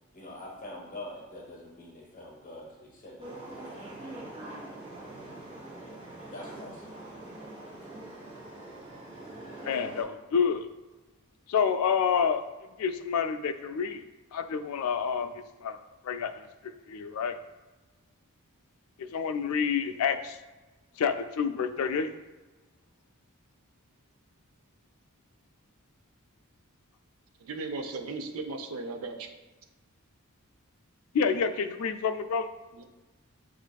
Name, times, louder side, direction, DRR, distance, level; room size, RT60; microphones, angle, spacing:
voice 1, 0.1-3.3 3.5-4.3 6.3-6.9 8.6-8.7, left 1 dB, 40° left, -2 dB, 0.8 m, -45 dB
sound 1, 3.2-10.0, right 1 dB, 30° right, 1.4 m, -43 dB
voice 2, 9.6-10.7 11.5-12.5 12.8-14.0 14.3-15.3 15.6-15.8 16.0-16.3 16.9-17.3 19.0-20.4 21.0-22.1 31.1-32.5, left 6 dB, 80° left, 9 dB, 0.3 m, -28 dB
voice 3, 27.4-29.3 32.7-32.8, right 3 dB, 80° right, 5 dB, 0.5 m, -36 dB
7.0 x 2.5 x 2.3 m, 1.2 s
head